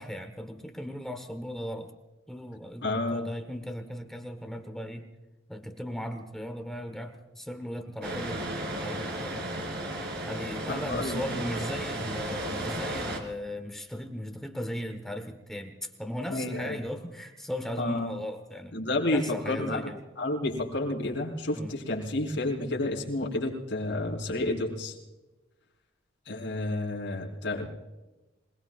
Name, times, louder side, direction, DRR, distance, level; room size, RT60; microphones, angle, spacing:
voice 1, 0.0-1.9 2.3-5.1 5.5-9.4 10.3-18.8 19.1-20.0 21.5-21.8, equal, ahead, 5 dB, 1.2 m, -37 dB
voice 2, 2.8-3.2 10.7-11.4 16.3-16.8 17.8-18.1 18.7-19.9 20.2-25.0 26.3-27.7, left 2 dB, 60° left, -2 dB, 4.9 m, -30 dB
sound 1, 8.0-13.2, right 1 dB, 55° right, 3.1 m, -34 dB
27.0 x 20.5 x 2.5 m, 1.1 s
head